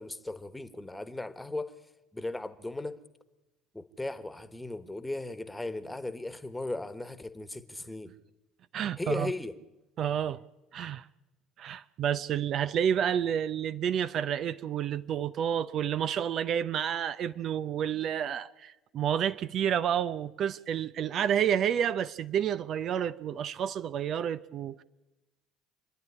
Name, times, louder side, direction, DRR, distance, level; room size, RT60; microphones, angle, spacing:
voice 1, 0.0-1.7 2.1-3.0 3.7-8.1 9.0-9.5, left 2 dB, 10° left, 1.4 m, -37 dB
voice 2, 8.7-9.3 10.0-10.4 10.7-11.1 11.6-24.8, right 9 dB, 55° right, 0.6 m, -30 dB
26.5 x 10.5 x 9.7 m
hypercardioid pair, 60°, 0 cm